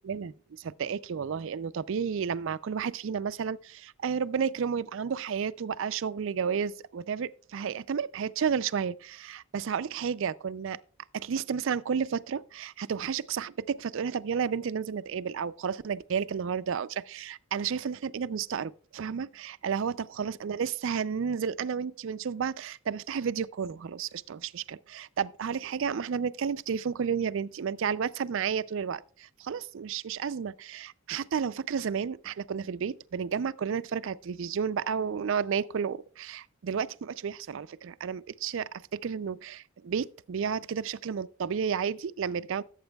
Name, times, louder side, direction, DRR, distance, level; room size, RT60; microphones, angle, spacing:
voice 1, 0.0-10.8 11.1-42.6, right 6 dB, 60° right, 0.4 m, -32 dB
16.5 x 8.0 x 2.3 m
head